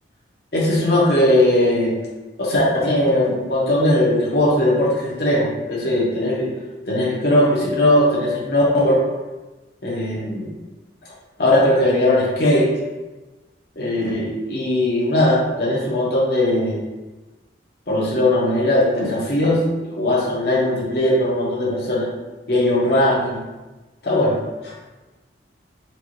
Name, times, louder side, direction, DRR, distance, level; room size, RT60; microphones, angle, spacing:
voice 1, 0.5-1.9 2.4-6.5 6.9-9.0 9.8-10.5 11.4-12.7 13.8-16.8 17.9-22.1 22.5-23.4 24.0-24.4 24.6-24.7, left 1 dB, 60° left, -5 dB, 1.2 m, -19 dB
4.6 x 2.5 x 3.1 m, 1.1 s
head